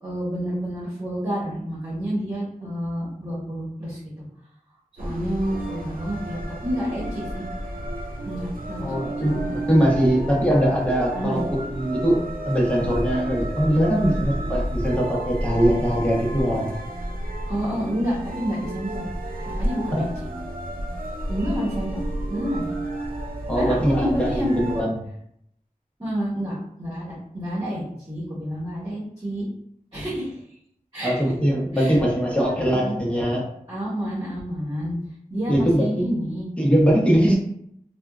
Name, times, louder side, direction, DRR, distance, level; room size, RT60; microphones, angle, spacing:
voice 1, 0.0-4.0 5.0-7.4 8.2-9.5 11.1-11.4 17.5-19.0 19.6-20.1 21.3-22.0 22.3-22.7 23.5-24.6 26.0-29.5 29.9-30.4 30.9-31.3 31.7-32.0 32.4-32.9 33.7-34.9 35.3-36.5, equal, 35° right, -10 dB, 1.3 m, -29 dB
sound 1, 5.0-24.8, right 1 dB, 75° right, 0.5 m, -31 dB
voice 2, 8.8-12.2 12.5-16.7 19.9-20.0 23.5-24.9 31.0-33.4 35.5-35.8 36.6-37.3, equal, 10° left, -4 dB, 1.0 m, -21 dB
3.5 x 2.4 x 2.4 m, 0.70 s
wide cardioid pair, 55°, 15 cm